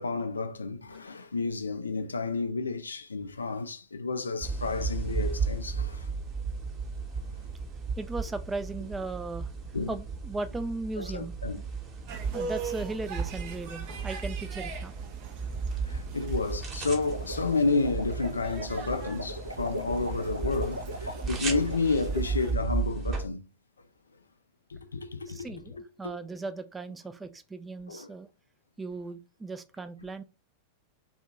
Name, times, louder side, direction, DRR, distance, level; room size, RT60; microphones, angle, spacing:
voice 1, 0.0-6.1 9.7-9.9 11.0-11.6 15.8-23.4 24.7-26.1 27.9-28.1, left 3 dB, 75° left, 0.4 m, -31 dB
sound 1, 4.4-23.2, right 4 dB, 30° right, 1.2 m, -35 dB
voice 2, 8.0-9.5 9.9-11.4 12.3-15.0 22.2-22.3 25.3-28.3 28.8-30.2, right 3 dB, 10° right, 0.4 m, -37 dB
sound 2, 12.1-22.5, right 6 dB, 45° right, 0.7 m, -41 dB
sound 3, 17.0-21.8, equal, 85° right, 0.4 m, -39 dB
2.7 x 2.5 x 3.5 m
figure-of-eight pair, 90°, 0 cm